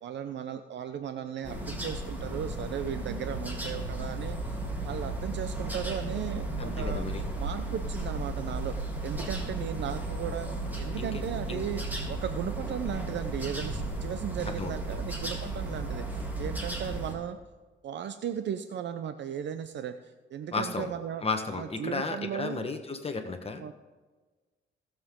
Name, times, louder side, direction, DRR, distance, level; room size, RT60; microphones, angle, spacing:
voice 1, 0.0-7.1 7.4-8.7 9.0-10.5 10.8-11.8 12.1-17.4 17.8-21.2 21.5-22.7 23.6-23.7, right 9 dB, 65° right, 9 dB, 0.7 m, -36 dB
sound 1, 1.4-17.2, right 2 dB, 10° right, 3.3 m, -34 dB
voice 2, 6.6-7.2 11.0-11.1 11.5-11.6 14.6-14.7 20.5-20.9 21.2-23.6, left 4 dB, 30° left, 6 dB, 1.3 m, -33 dB
18.0 x 7.7 x 3.8 m, 1.3 s
cardioid pair, 90°, 20 cm